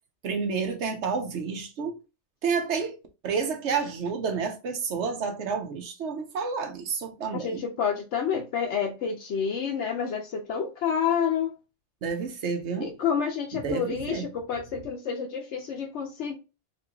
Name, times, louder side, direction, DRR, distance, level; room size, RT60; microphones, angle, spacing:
voice 1, 0.2-2.0 2.4-3.0 3.2-7.6 12.0-12.9 13.5-14.3, right 5 dB, 85° right, 1.1 m, -30 dB
voice 2, 7.3-11.5 12.8-16.4, left 7 dB, 85° left, 1.0 m, -29 dB
4.2 x 2.6 x 2.9 m
omnidirectional pair, 1.1 m